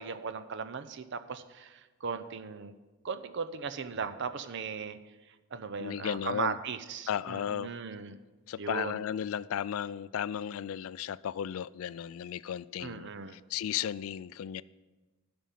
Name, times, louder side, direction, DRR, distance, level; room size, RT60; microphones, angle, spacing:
voice 1, 0.0-2.7 3.0-5.0 5.5-8.2 8.6-9.0 12.8-13.4, right 5 dB, 55° right, 10 dB, 0.6 m, -37 dB
voice 2, 5.8-6.6 7.1-7.7 8.5-14.6, left 9 dB, 75° left, 19 dB, 0.3 m, -35 dB
11.0 x 5.3 x 7.5 m, 1.2 s
head